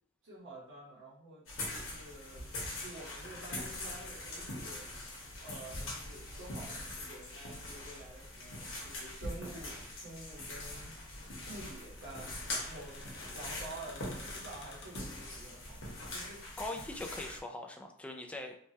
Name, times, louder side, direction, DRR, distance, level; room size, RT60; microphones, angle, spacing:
voice 1, 0.2-1.5 1.7-2.4 2.7-4.9 5.4-11.0 11.5-13.0 13.3-16.4, right 2 dB, 65° right, -8 dB, 0.9 m, -49 dB
sound 1, 1.5-17.4, left 1 dB, 85° left, 1.0 m, -43 dB
sound 2, 2.2-15.0, left 2 dB, 60° left, 0.6 m, -54 dB
voice 2, 16.6-18.5, left 2 dB, 5° left, 3 dB, 0.3 m, -41 dB
3.2 x 2.2 x 2.7 m, 0.62 s
head